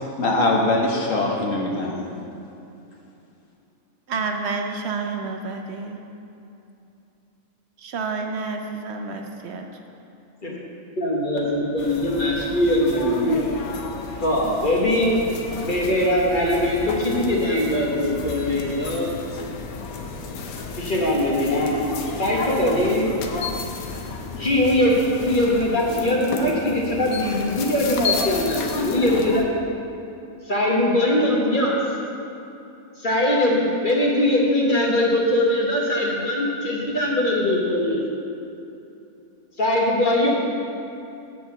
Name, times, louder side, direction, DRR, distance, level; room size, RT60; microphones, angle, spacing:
voice 1, 0.0-2.1, left 2 dB, 65° left, -1 dB, 1.5 m, -22 dB
voice 2, 4.1-6.0 7.8-9.6, right 4 dB, 60° right, 4 dB, 0.8 m, -29 dB
voice 3, 11.0-13.4 14.1-15.2 15.6-19.1 20.8-21.8 22.2-23.1 24.4-29.5 30.5-31.8 33.0-38.2 39.6-40.3, left 1 dB, 40° left, -3 dB, 1.1 m, -21 dB
sound 1, 11.8-29.4, left 4 dB, 80° left, 1.2 m, -32 dB
7.8 x 4.8 x 7.0 m, 2.8 s
omnidirectional pair, 1.5 m